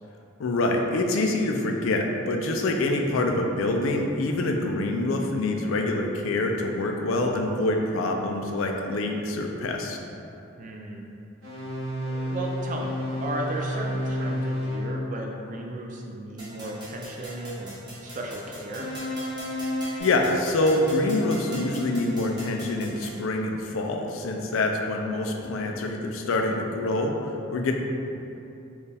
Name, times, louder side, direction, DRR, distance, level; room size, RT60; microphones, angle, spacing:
voice 1, 0.4-10.0 20.0-27.7, left 2 dB, 75° left, 2 dB, 0.4 m, -26 dB
voice 2, 10.6-11.0 12.1-12.9 13.2-17.8 18.0-18.9, right 1 dB, 40° right, 0 dB, 0.4 m, -35 dB
sound 1, 11.4-14.9 18.7-20.0, equal, 90° right, 1.0 m, -30 dB
sound 2, 16.4-23.2, equal, 20° right, 0.8 m, -41 dB
4.4 x 2.4 x 3.3 m, 2.8 s
head